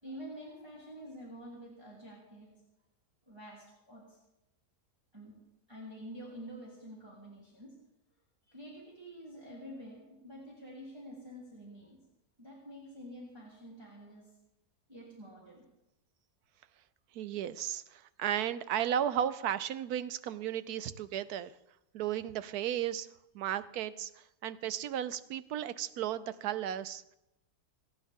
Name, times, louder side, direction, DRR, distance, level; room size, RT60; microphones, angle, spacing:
voice 1, 0.0-2.5 3.3-4.2 5.1-5.3 5.7-7.7 8.5-12.0 12.4-14.3 14.9-15.6, equal, 15° right, -6 dB, 3.1 m, -48 dB
voice 2, 17.1-21.5 21.9-23.1 23.3-27.2, right 10 dB, 75° right, 14 dB, 1.2 m, -34 dB
29.5 x 10.0 x 3.6 m, 0.90 s
omnidirectional pair, 1.7 m